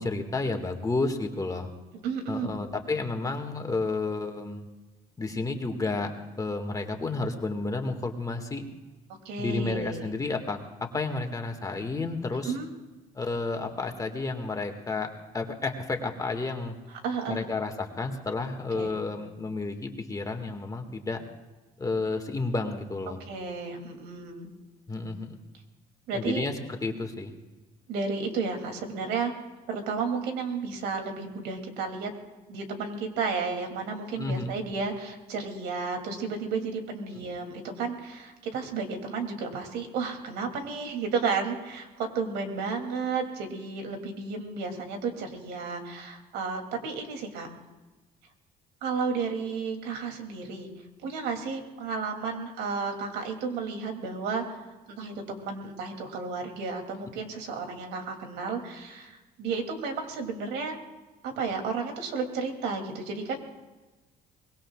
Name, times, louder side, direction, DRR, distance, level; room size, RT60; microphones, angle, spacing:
voice 1, 0.0-1.7 2.3-4.7 5.2-6.1 6.4-8.6 9.4-12.5 13.1-16.7 17.3-21.2 21.8-23.2 24.9-25.4 26.1-27.4 34.2-34.5, left 3 dB, 20° left, 4 dB, 2.0 m, -31 dB
voice 2, 2.0-2.6 9.2-10.1 12.4-12.7 16.9-17.4 18.7-18.9 23.1-24.5 26.1-26.5 27.9-29.3 29.7-32.1 32.5-47.5 48.8-50.7 51.0-54.6 54.9-60.8 61.2-63.4, right 4 dB, 85° right, 4 dB, 3.0 m, -32 dB
24.0 x 21.0 x 2.5 m, 1.2 s
cardioid pair, 110°, 17 cm